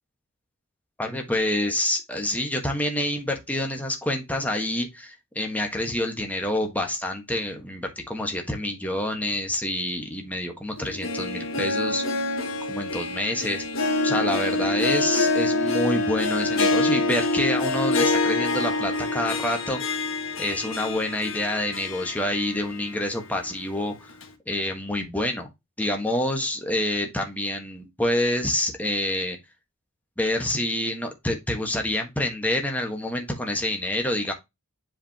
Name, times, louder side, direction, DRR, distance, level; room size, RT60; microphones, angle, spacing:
voice 1, 1.0-12.0 12.7-13.6 14.0-20.0 20.4-24.1 24.5-25.5 25.8-29.4 30.2-34.3, left 1 dB, 5° left, 1.3 m, -27 dB
Harp, 10.8-22.9 23.3-23.4 24.2-24.3, left 2 dB, 65° left, 1.4 m, -26 dB
7.6 x 5.0 x 2.9 m
head